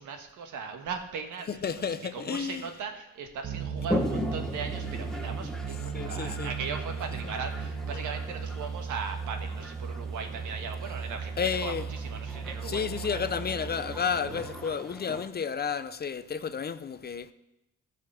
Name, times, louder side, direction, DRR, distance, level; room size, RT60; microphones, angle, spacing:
voice 1, 0.0-13.2, right 5 dB, 80° right, 1.5 m, -38 dB
voice 2, 1.5-2.7 5.9-6.5 11.4-11.9 12.6-17.3, left 6 dB, 35° left, 0.6 m, -31 dB
sound 1, 3.4-14.7, right 6 dB, 40° right, 1.3 m, -36 dB
Toilet flush, 3.8-15.3, left 1 dB, ahead, 1.1 m, -39 dB
14.5 x 5.2 x 6.8 m
cardioid pair, 90°, 30 cm